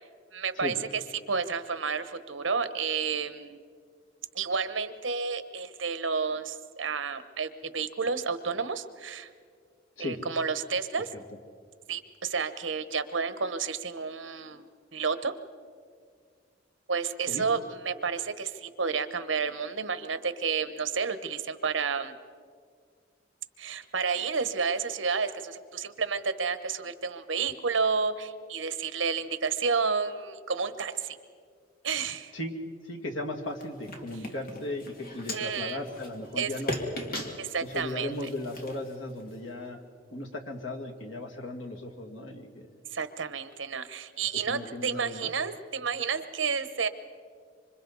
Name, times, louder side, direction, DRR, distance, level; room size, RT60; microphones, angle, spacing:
voice 1, 0.3-0.7 1.3-3.6 4.3-9.3 10.0-11.1 11.9-14.7 14.9-15.3 16.9-17.6 17.8-22.1 23.6-31.2 31.8-32.3 35.3-35.8 36.4-36.5 37.4-38.1 42.9-46.9, right 5 dB, 70° right, 11 dB, 1.1 m, -30 dB
voice 2, 32.8-36.8 37.6-39.8 40.1-42.7 44.5-45.3, left 1 dB, 80° left, 2 dB, 2.3 m, -36 dB
sound 1, 33.5-39.5, left 1 dB, 50° left, 2.3 m, -39 dB
26.5 x 25.0 x 4.1 m, 2.1 s
head